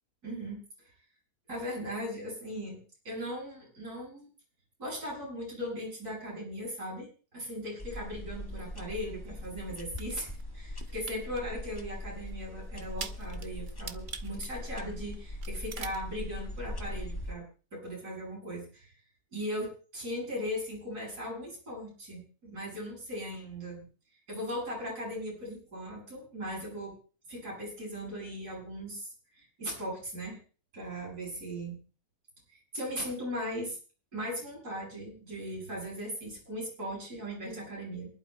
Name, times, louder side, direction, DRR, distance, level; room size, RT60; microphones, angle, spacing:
voice 1, 0.2-0.9 1.5-2.8 3.0-4.3 4.8-17.4 17.7-18.9 19.3-19.7 19.9-23.8 24.3-26.9 27.3-29.1 29.4-30.4 30.7-31.7 32.5-33.8 34.1-38.1, equal, 90° right, -3 dB, 7.8 m, -38 dB
sound 1, 7.8-17.3, left 1 dB, 15° left, 1.2 m, -41 dB
sound 2, 9.4-10.4 10.8-11.4 11.8-11.9 12.3-12.4 12.8-15.2 15.4-16.0, right 5 dB, 40° right, 0.7 m, -43 dB
27.5 x 11.5 x 2.2 m, 0.38 s
omnidirectional pair, 1.6 m